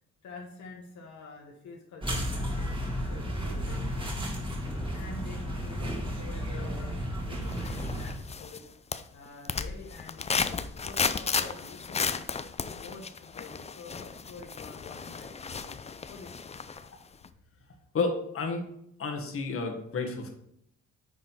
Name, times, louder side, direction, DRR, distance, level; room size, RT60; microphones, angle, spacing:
voice 1, 0.2-3.9 4.5-8.7 9.1-12.3 12.7-15.8 16.1-16.3, left 3 dB, 65° left, 0 dB, 1.3 m, -47 dB
sound 1, 2.0-8.2, equal, 15° right, 2.0 m, -33 dB
sound 2, 7.5-8.6 8.9-16.9 17.2-17.3, left 5 dB, 20° left, 0.4 m, -34 dB
voice 2, 17.9-18.6 19.0-20.3, left 4 dB, 45° left, 4 dB, 1.5 m, -31 dB
9.4 x 3.8 x 4.5 m, 0.73 s
cardioid pair, 90°, 30 cm